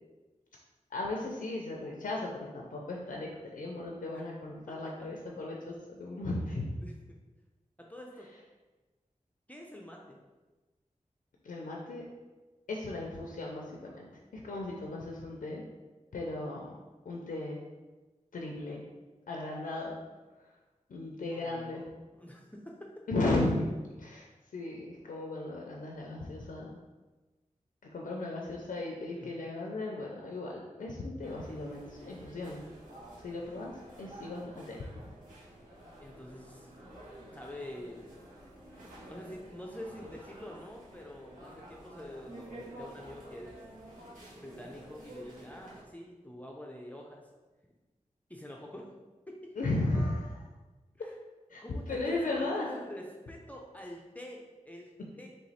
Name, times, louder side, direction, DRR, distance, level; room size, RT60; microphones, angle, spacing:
voice 1, 0.9-6.7 11.4-12.0 12.7-14.1 14.3-15.6 16.1-16.7 17.1-17.6 18.3-18.8 19.3-19.9 20.9-21.8 23.1-23.7 24.0-26.8 27.8-32.7 33.2-35.0 49.6-50.3 51.5-52.7, left 2 dB, 90° left, -1 dB, 0.5 m, -36 dB
voice 2, 7.8-8.3 9.5-10.2 16.1-16.4 21.3-22.9 29.1-29.5 36.0-36.7 37.3-38.1 39.0-43.6 44.4-47.3 48.3-48.9 49.3-49.5 51.0-51.2 51.6-55.3, left 1 dB, 10° left, -1 dB, 0.6 m, -46 dB
sound 1, 31.2-45.8, right 1 dB, 80° right, 1.2 m, -50 dB
3.2 x 3.0 x 4.1 m, 1.2 s
cardioid pair, 50°, 13 cm